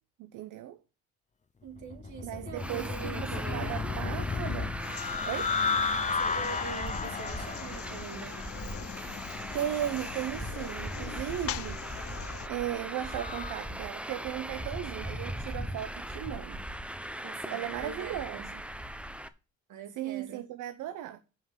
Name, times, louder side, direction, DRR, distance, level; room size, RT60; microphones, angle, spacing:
voice 1, 0.2-0.8 2.2-4.8 5.3-5.5 9.5-11.8 12.4-16.7 17.5-18.6 20.0-21.2, right 12 dB, 90° right, 0.9 m, -36 dB
voice 2, 1.6-4.0 6.1-8.4 17.2-18.5 19.7-20.4, right 6 dB, 75° right, 3.0 m, -44 dB
sound 1, 1.8-13.6, left 5 dB, 25° left, 0.9 m, -35 dB
Traffic noise roadway noise, 2.6-19.3, right 1 dB, 5° right, 1.0 m, -39 dB
sound 2, 4.8-12.5, left 13 dB, 50° left, 0.4 m, -43 dB
9.7 x 5.7 x 7.3 m
cardioid pair, 90°, 30 cm